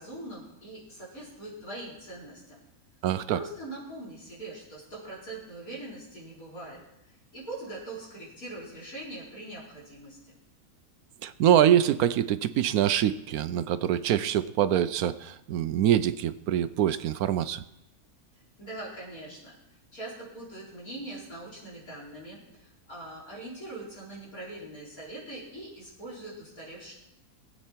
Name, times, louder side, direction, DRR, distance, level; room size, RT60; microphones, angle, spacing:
voice 1, 0.0-2.6 3.3-10.3 18.6-19.6 19.9-26.9, right 2 dB, 65° left, -6 dB, 5.0 m, -42 dB
voice 2, 3.0-3.4 11.2-17.6, right 10 dB, 75° right, 14 dB, 1.1 m, -24 dB
20.0 x 8.5 x 4.5 m, 0.87 s
omnidirectional pair, 1.6 m